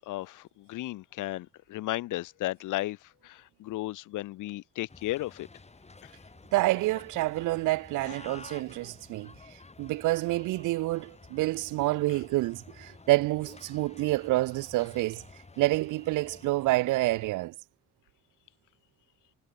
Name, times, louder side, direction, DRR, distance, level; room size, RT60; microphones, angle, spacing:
voice 1, 0.0-5.5 6.0-6.1 8.0-8.1 12.1-12.2, left 17 dB, 85° left, 1.2 m, -35 dB
sound 1, 4.9-17.3, left 3 dB, 20° left, 6.7 m, -51 dB
voice 2, 6.5-9.3 9.8-15.2 15.6-17.5, right 19 dB, 85° right, 0.5 m, -28 dB
cardioid pair, 90°, 30 cm